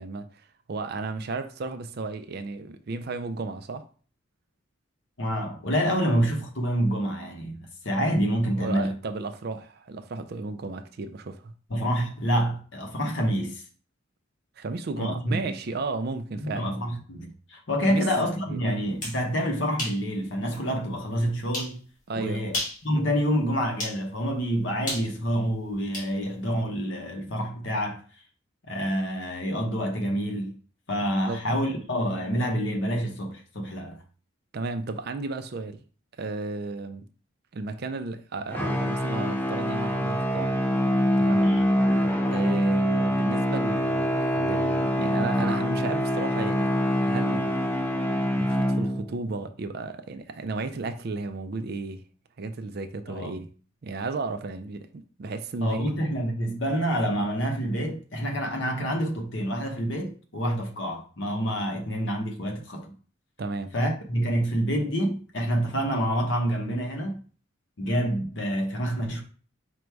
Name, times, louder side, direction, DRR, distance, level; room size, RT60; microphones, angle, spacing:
voice 1, 0.0-3.9 8.6-11.5 14.6-16.7 17.9-18.1 18.4-18.6 22.1-22.5 31.3-31.4 34.5-35.8 36.2-37.1 37.5-40.6 41.2-41.5 42.3-46.7 47.0-47.5 48.4-52.0 52.4-53.5 53.8-55.9 63.4-63.7, right 3 dB, 50° right, 0.4 m, -33 dB
voice 2, 5.2-9.0 11.7-13.6 15.0-15.5 16.4-21.8 22.2-22.6 22.8-28.0 28.7-30.5 30.9-34.0 41.4-41.7 53.1-53.4 55.6-62.9 63.7-67.2 67.8-69.2, equal, 60° left, 0.9 m, -27 dB
sound 1, 18.8-19.2 19.8-20.0 20.5-20.6 21.5-21.8 22.4-22.8 23.8-24.0 24.9-26.1, left 1 dB, 40° left, 2.0 m, -32 dB
sound 2, 38.5-49.3, equal, 10° left, 0.5 m, -25 dB
5.1 x 2.2 x 4.5 m
head